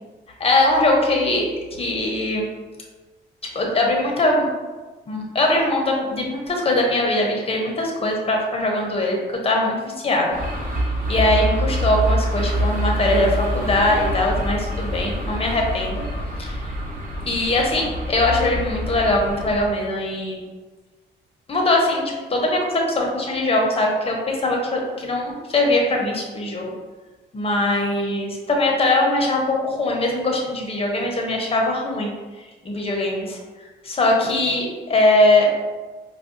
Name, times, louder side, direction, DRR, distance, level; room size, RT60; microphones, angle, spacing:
voice 1, 0.4-1.5 1.8-2.5 3.5-4.5 5.1-9.2 9.4-10.3 11.1-16.0 16.4-16.7 17.3-20.4 21.5-26.7 27.3-32.1 32.6-33.4 33.8-35.6, left 2 dB, 30° left, 0 dB, 0.8 m, -21 dB
sound 1, 10.3-19.7, equal, 40° right, 1.2 m, -25 dB
4.6 x 2.2 x 2.6 m, 1.3 s
cardioid pair, 90°, 20 cm